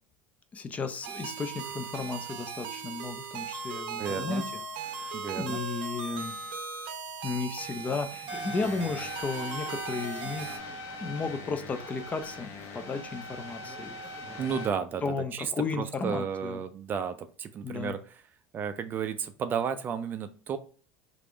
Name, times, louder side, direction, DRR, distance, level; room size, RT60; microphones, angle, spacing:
voice 1, 0.5-6.4 7.2-10.7 11.0-14.5 15.0-16.6 17.6-18.0, left 4 dB, 25° left, 8 dB, 0.5 m, -34 dB
sound 1, 1.0-10.6, right 5 dB, 80° right, 0.7 m, -38 dB
voice 2, 4.0-4.4 5.1-5.6 14.4-18.2 18.5-20.6, right 7 dB, 35° right, 9 dB, 0.4 m, -33 dB
sound 2, 8.3-14.7, left 1 dB, 50° left, 0.8 m, -41 dB
3.4 x 2.5 x 3.3 m, 0.41 s
supercardioid pair, 105°, 6 cm